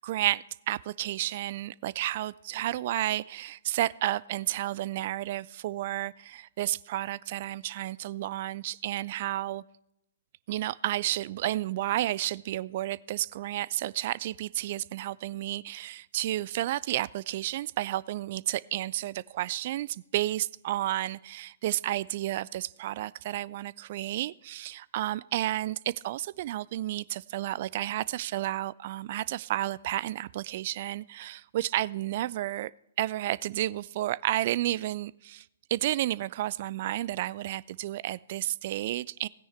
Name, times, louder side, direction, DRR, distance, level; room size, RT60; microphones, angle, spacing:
voice 1, 0.0-9.6 10.5-32.7 33.0-35.5 35.7-39.3, right 14 dB, 40° right, 21 dB, 0.3 m, -31 dB
17.0 x 9.8 x 3.3 m, 0.81 s
figure-of-eight pair, 120°, 0 cm